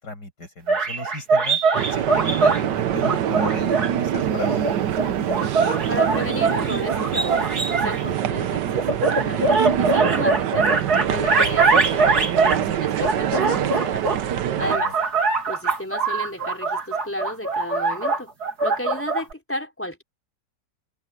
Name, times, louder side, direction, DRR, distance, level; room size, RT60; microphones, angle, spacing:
voice 1, 0.0-4.7 14.6-14.9, left 3 dB, 75° left, 7.4 m, -35 dB
sound 1, 0.7-2.6 3.0-3.9 4.4-8.0 8.8-12.6 13.0-14.2 14.6-19.3, right 3 dB, 65° right, 3.5 m, -22 dB
sound 2, 1.7-14.8, right 10 dB, 80° right, 1.6 m, -25 dB
voice 2, 5.9-8.9 9.2-10.7 11.1-14.0 14.6-14.9 15.5-18.3 18.6-20.0, left 1 dB, 5° left, 4.0 m, -33 dB
omnidirectional pair, 1.8 m